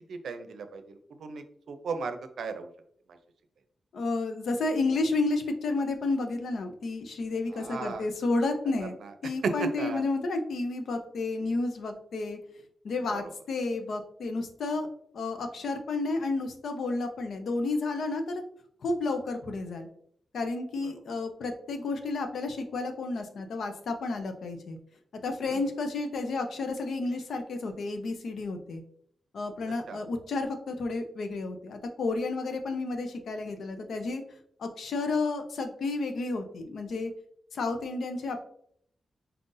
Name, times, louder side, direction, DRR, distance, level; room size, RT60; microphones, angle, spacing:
voice 1, 0.1-2.7 7.5-8.0 9.4-10.0 13.1-13.2 25.5-25.6 29.9-30.0, right 4 dB, 80° right, 8 dB, 0.5 m, -35 dB
voice 2, 3.9-8.9 9.2-12.4 12.8-14.9 15.1-18.4 18.8-19.9 20.3-24.8 25.2-28.8 29.3-34.2 34.6-37.1 37.5-38.4, left 3 dB, 70° left, 6 dB, 0.7 m, -31 dB
4.2 x 3.8 x 2.6 m, 0.64 s
wide cardioid pair, 130°, 0 cm